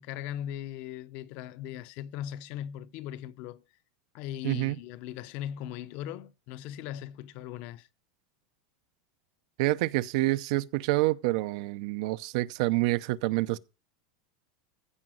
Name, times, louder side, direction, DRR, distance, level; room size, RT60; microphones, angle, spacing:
voice 1, 0.0-3.6 4.1-7.9, left 11 dB, 40° left, 0.7 m, -39 dB
voice 2, 4.4-4.8 9.6-13.6, right 19 dB, 55° right, 0.6 m, -27 dB
15.5 x 5.2 x 7.7 m
supercardioid pair, 175°, 4 cm